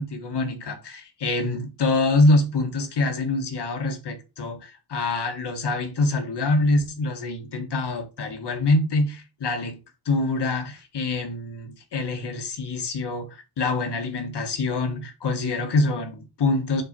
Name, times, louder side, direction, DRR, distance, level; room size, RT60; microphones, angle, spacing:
voice 1, 0.0-9.8 10.0-16.8, left 2 dB, 90° left, 1.9 m, -25 dB
6.5 x 4.2 x 5.4 m
wide cardioid pair, 135°, 39 cm